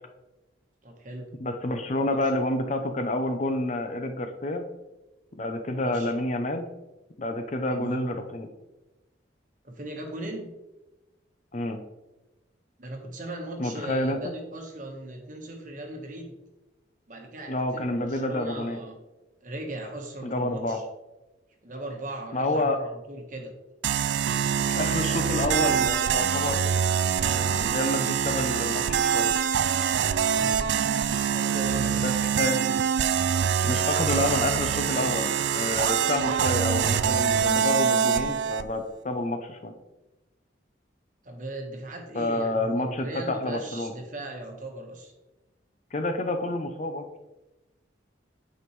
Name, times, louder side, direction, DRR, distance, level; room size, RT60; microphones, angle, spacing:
voice 1, 0.8-1.2 1.8-2.5 5.7-6.1 7.7-8.1 9.6-10.5 12.8-16.3 17.1-19.0 19.4-20.8 21.6-23.5 30.4-30.8 31.3-32.1 36.2-36.7 41.2-45.1, right 1 dB, 40° right, 2 dB, 1.2 m, -38 dB
voice 2, 1.4-4.6 5.4-6.7 7.2-8.5 11.5-11.8 13.6-14.2 17.5-18.8 20.2-20.8 22.3-22.8 24.7-26.7 27.2-29.3 31.9-32.6 33.6-39.7 42.1-43.9 45.9-47.0, left 1 dB, 40° left, 6 dB, 0.6 m, -29 dB
sound 1, 23.8-38.6, right 8 dB, 65° right, 0.3 m, -25 dB
8.7 x 5.3 x 3.1 m, 1.0 s
head